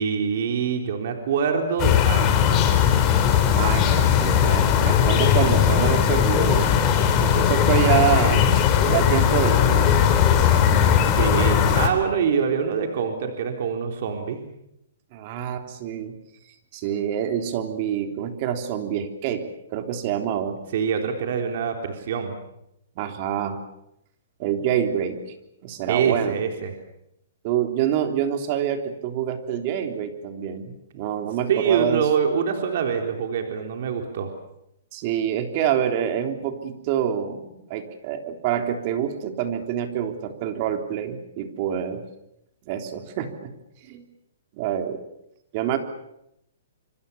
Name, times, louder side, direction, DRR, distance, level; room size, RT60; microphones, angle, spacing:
voice 1, 0.0-2.6 11.2-14.4 20.7-22.4 25.9-26.7 31.5-34.3, right 6 dB, 55° right, 4 dB, 3.8 m, -25 dB
sound 1, 1.8-11.9, left 8 dB, 30° left, 4.0 m, -18 dB
voice 2, 3.5-6.7 7.2-8.4 8.9-10.0 15.1-16.2 16.7-20.6 22.9-23.6 24.4-25.3 25.6-26.4 27.4-32.1 34.9-42.0 42.6-43.5 43.8-44.0 44.5-45.0 45.5-45.8, right 9 dB, 40° right, 6 dB, 3.4 m, -26 dB
26.0 x 25.5 x 7.1 m, 0.81 s
hypercardioid pair, 145°, 0 cm